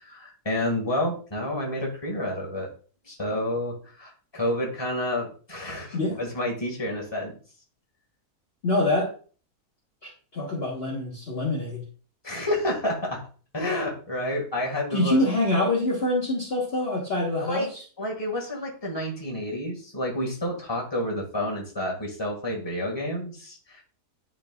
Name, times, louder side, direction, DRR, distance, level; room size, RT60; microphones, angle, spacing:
voice 1, 0.0-2.7 3.0-7.3 12.2-13.2 13.5-15.2 17.4-17.7 18.0-23.8, left 1 dB, 15° left, -1 dB, 1.8 m, -29 dB
voice 2, 8.6-9.1 10.0-11.8 14.9-17.7, left 1 dB, 40° left, -4 dB, 1.5 m, -25 dB
11.0 x 4.0 x 2.3 m, 0.40 s
omnidirectional pair, 1.6 m